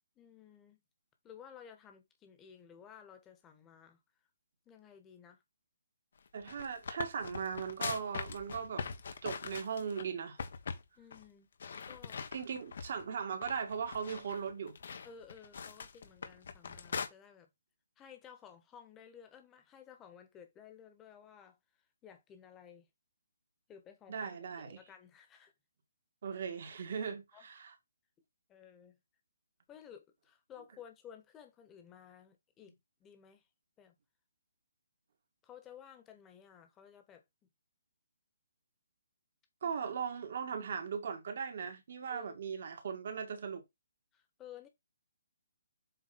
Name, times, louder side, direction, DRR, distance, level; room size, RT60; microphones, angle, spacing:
voice 1, 0.2-0.8 1.2-4.0 4.6-5.4 11.0-11.5 11.8-12.4 15.0-17.5 18.0-21.6 22.0-22.9 23.7-25.5 27.3-27.4 28.5-29.0 29.7-32.7 33.0-33.4 33.8-33.9 35.4-37.2 42.1-42.4 44.1-44.7, left 8 dB, 15° left, 1.4 m, -55 dB
sound 1, 6.3-10.0 10.4-10.8 11.1-11.2 11.6-13.0 13.4-17.1, left 5 dB, 60° left, 1.3 m, -42 dB
voice 2, 6.3-8.9 9.2-10.4 12.3-14.8 24.1-24.8 26.2-27.7 39.6-43.6, right 6 dB, 50° right, 2.0 m, -38 dB
7.8 x 3.1 x 4.3 m
hypercardioid pair, 160°, 0 cm